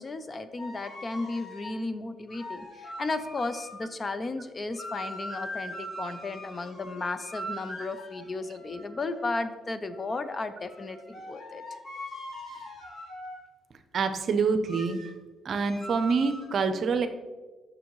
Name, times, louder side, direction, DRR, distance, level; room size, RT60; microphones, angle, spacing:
voice 1, 0.0-11.6, left 3 dB, 30° left, 11 dB, 0.5 m, -34 dB
sound 1, 0.6-1.8 2.3-3.8 4.7-9.3 9.9-13.5 14.7-15.2 15.5-16.5, equal, 70° left, 1.5 m, -41 dB
voice 2, 13.9-15.0 15.4-17.1, right 5 dB, 55° right, 9 dB, 0.6 m, -26 dB
6.9 x 6.2 x 3.1 m, 1.3 s
cardioid pair, 90°, 0 cm